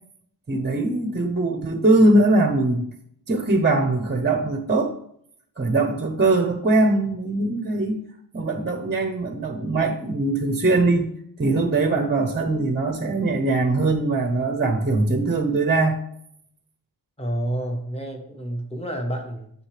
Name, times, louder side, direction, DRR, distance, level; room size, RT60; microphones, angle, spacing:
voice 1, 0.5-2.9 3.3-4.9 5.6-8.0 8.3-11.1 11.4-16.0, right 2 dB, 25° right, 5 dB, 0.8 m, -21 dB
voice 2, 17.2-19.5, right 1 dB, 15° left, 3 dB, 1.3 m, -29 dB
9.6 x 6.8 x 3.3 m, 0.70 s
wide cardioid pair, 135°, 43 cm